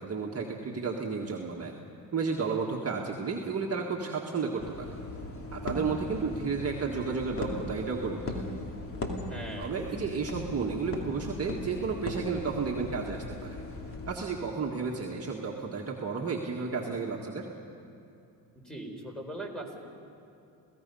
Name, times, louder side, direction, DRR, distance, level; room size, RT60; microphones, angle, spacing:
voice 1, 0.0-1.7 2.1-4.9 5.5-8.4 9.6-13.6 14.1-17.5, right 5 dB, 30° right, -1 dB, 1.8 m, -32 dB
sound 1, 4.6-14.4, left 2 dB, 30° left, 2.6 m, -38 dB
voice 2, 9.3-9.8 18.6-19.8, right 1 dB, ahead, 1 dB, 4.4 m, -40 dB
28.0 x 17.0 x 5.5 m, 2.7 s
supercardioid pair, 90°, 45 cm